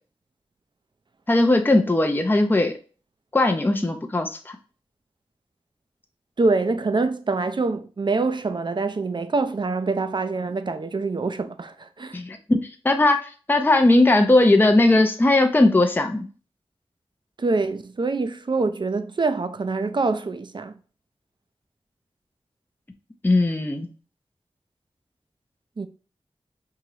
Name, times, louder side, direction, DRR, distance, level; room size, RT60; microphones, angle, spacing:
voice 1, 1.3-2.8 3.3-4.6 12.1-13.2 13.5-16.3 23.2-23.9, left 2 dB, 20° left, 0.5 m, -18 dB
voice 2, 6.4-12.2 17.4-20.8 25.8-25.9, right 3 dB, 45° right, 0.5 m, -25 dB
4.7 x 2.9 x 2.8 m
wide cardioid pair, 55°, 11 cm